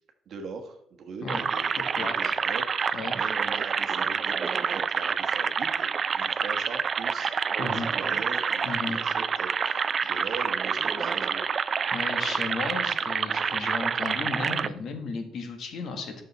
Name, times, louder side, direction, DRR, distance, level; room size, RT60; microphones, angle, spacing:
voice 1, 0.2-11.4 12.2-12.8, right 4 dB, 50° right, 4 dB, 1.4 m, -41 dB
sound 1, 1.3-14.7, right 6 dB, 35° right, 0.3 m, -28 dB
voice 2, 2.0-2.3 2.9-3.2 7.6-7.9 8.6-9.0 11.9-16.3, left 4 dB, 50° left, 5 dB, 1.5 m, -34 dB
11.0 x 6.5 x 4.1 m, 0.74 s
cardioid pair, 155°, 0 cm